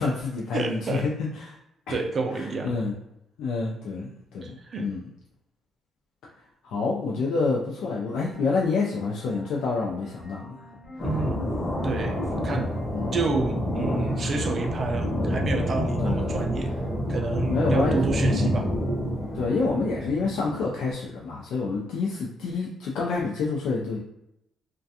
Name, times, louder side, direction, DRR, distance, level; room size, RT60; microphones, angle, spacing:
voice 1, 0.0-1.6 1.9-2.0 2.3-2.9 3.4-5.0 6.6-10.6 11.0-11.1 12.5-13.2 16.0-16.4 17.5-18.0 19.3-24.0, left 4 dB, 90° left, -3 dB, 0.4 m, -28 dB
voice 2, 0.5-1.0 1.9-2.7 4.0-4.1 4.4-4.9 7.2-7.3 11.0-12.8 13.1-16.7 17.1-18.7, right 3 dB, 40° right, 3 dB, 0.4 m, -30 dB
sound 1, 8.0-19.8, left 1 dB, 50° left, 1.0 m, -45 dB
sound 2, 11.0-20.8, equal, 30° left, 0.7 m, -28 dB
2.4 x 2.2 x 2.7 m, 0.82 s
cardioid pair, 135°, 0 cm